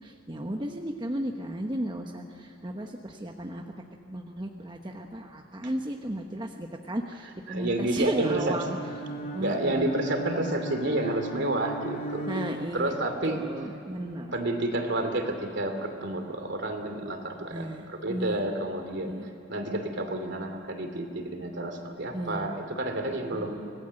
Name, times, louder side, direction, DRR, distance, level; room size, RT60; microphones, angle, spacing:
voice 1, 0.0-3.7 4.1-8.8 9.3-9.9 12.3-12.9 13.3-14.3 17.5-18.4 19.0-19.3 22.1-22.5 23.3-23.5, right 1 dB, 25° right, 2 dB, 1.1 m, -34 dB
voice 2, 7.5-8.6 9.4-12.3 12.7-13.4 14.3-19.1 19.5-23.6, right 1 dB, 60° right, 5 dB, 2.9 m, -30 dB
Bowed string instrument, 8.6-13.2, right 2 dB, 45° left, 3.0 m, -37 dB
25.5 x 19.0 x 7.8 m, 3.0 s
head